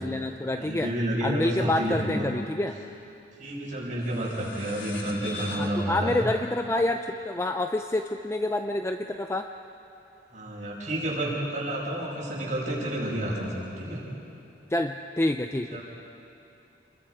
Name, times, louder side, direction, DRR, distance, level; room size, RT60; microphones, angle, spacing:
voice 1, 0.0-0.9 1.2-2.8 5.5-9.5 14.7-15.8, left 1 dB, 15° left, 6 dB, 0.5 m, -28 dB
voice 2, 0.6-2.3 3.4-6.2 10.3-14.0 15.7-15.8, right 1 dB, 45° right, -5 dB, 5.9 m, -30 dB
sound 1, 4.0-8.9, left 4 dB, 90° left, 1.9 m, -45 dB
29.0 x 22.0 x 5.0 m, 2.9 s
head